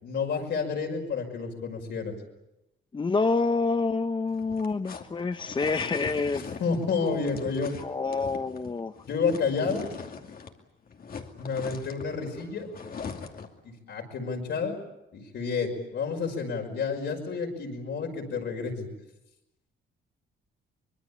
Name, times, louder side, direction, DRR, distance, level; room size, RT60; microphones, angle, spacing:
voice 1, 0.0-2.2 6.3-7.7 9.1-9.9 11.4-12.7 13.9-14.8 15.1-18.9, left 5 dB, 65° left, 0 dB, 5.7 m, -30 dB
voice 2, 2.9-6.6 7.8-8.9, left 4 dB, 25° left, 10 dB, 0.8 m, -27 dB
sound 1, 4.3-10.6 10.9-13.6, left 5 dB, 50° left, 2.6 m, -41 dB
25.0 x 21.5 x 8.6 m, 0.92 s
cardioid pair, 90°, 20 cm